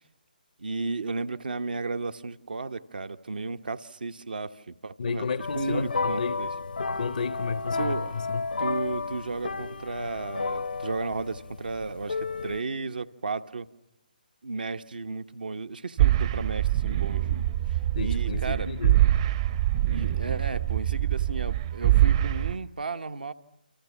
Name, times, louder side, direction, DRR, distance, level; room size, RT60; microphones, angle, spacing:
voice 1, 0.6-5.3 5.5-6.5 7.8-8.1 8.6-13.7 14.4-17.5 18.0-18.7 19.9-23.3, right 3 dB, 70° right, 1.2 m, -34 dB
voice 2, 5.0-6.4 6.9-8.5 17.9-19.0, left 5 dB, 65° left, 0.9 m, -32 dB
sound 1, 5.4-12.6, left 4 dB, 80° left, 1.3 m, -32 dB
sound 2, 16.0-22.6, right 14 dB, 40° right, 0.9 m, -24 dB
29.5 x 26.5 x 7.2 m
figure-of-eight pair, 140°, 5 cm